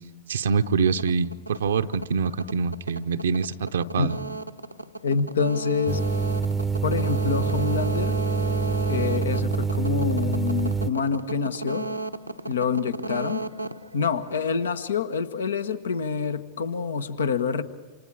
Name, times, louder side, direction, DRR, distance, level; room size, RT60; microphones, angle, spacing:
voice 1, 0.3-4.2, right 5 dB, 65° right, 8 dB, 0.8 m, -25 dB
sound 1, 0.9-14.7, right 2 dB, 90° right, 1.0 m, -34 dB
voice 2, 5.0-6.0 6.8-8.2 8.9-11.9 12.5-13.4 13.9-17.6, left 5 dB, 70° left, 12 dB, 1.3 m, -27 dB
sound 2, 5.9-10.9, right 5 dB, 10° right, 0.8 m, -26 dB
28.5 x 27.5 x 4.9 m, 1.3 s
figure-of-eight pair, 90°, 0 cm